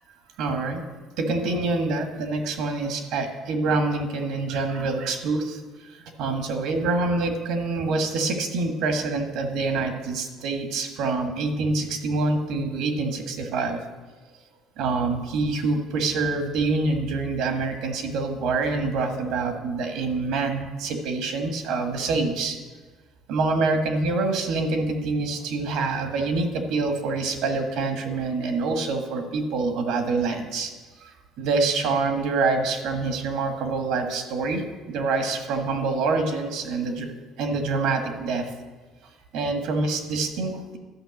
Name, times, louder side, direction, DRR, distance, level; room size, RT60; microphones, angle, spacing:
voice 1, 0.4-0.8 1.2-13.8 14.8-22.6 23.3-30.7 31.0-34.6 34.9-37.1 37.4-38.5 39.3-40.8, right 3 dB, 75° right, 5 dB, 1.6 m, -26 dB
11.5 x 5.6 x 7.1 m, 1.3 s
cardioid pair, 115°, 0 cm